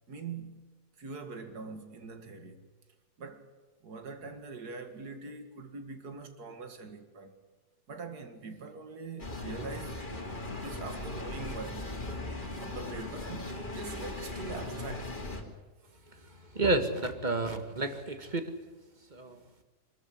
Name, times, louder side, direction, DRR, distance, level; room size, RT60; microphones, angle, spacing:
voice 1, 0.1-2.6 3.2-3.5 3.8-7.3 7.9-10.0 10.6-11.9 12.6-15.2, right 4 dB, 75° right, 2.5 m, -43 dB
sound 1, 9.2-15.4, left 2 dB, 30° left, 2.9 m, -38 dB
voice 2, 16.5-18.4 19.1-19.4, right 2 dB, 30° right, 2.0 m, -30 dB
25.0 x 13.0 x 9.6 m
omnidirectional pair, 1.7 m